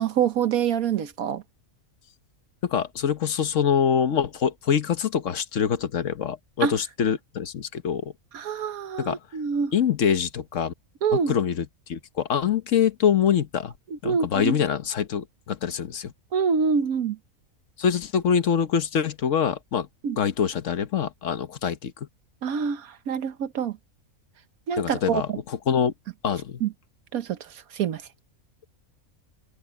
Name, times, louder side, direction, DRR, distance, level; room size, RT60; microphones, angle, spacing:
voice 1, 0.0-1.4 6.6-6.8 8.3-9.7 11.0-11.3 13.9-14.6 16.3-17.2 20.0-20.2 22.4-23.8 24.7-25.4 26.6-26.7 27.1-27.4 27.7-28.0, right 7 dB, 85° right, 1.5 m, -26 dB
voice 2, 2.6-8.1 9.0-9.2 9.7-10.7 11.1-13.7 14.0-16.1 17.8-19.9 20.2-21.9 24.8-25.9 26.2-26.6, left 8 dB, 65° left, 1.3 m, -25 dB
omnidirectional pair, 1.5 m